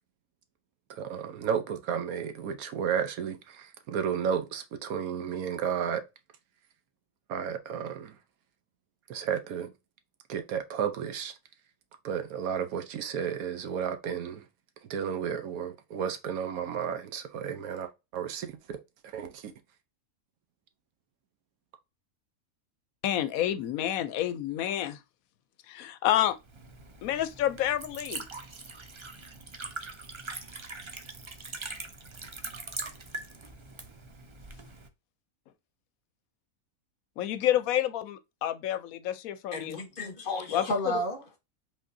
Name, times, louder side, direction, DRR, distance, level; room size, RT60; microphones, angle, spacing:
voice 1, 0.9-6.0 7.3-8.2 9.1-9.7 10.3-11.4 12.0-14.4 14.9-18.8 19.0-19.5, right 8 dB, 75° right, 1.2 m, -32 dB
voice 2, 23.0-25.0 25.7-26.4 27.0-28.3 37.2-39.8 40.5-41.0, left 12 dB, 75° left, 1.0 m, -29 dB
Liquid, 26.3-34.9, right 3 dB, 40° right, 0.4 m, -42 dB
voice 3, 39.5-41.4, left 1 dB, 40° left, 1.2 m, -32 dB
5.3 x 3.7 x 2.6 m
omnidirectional pair, 1.5 m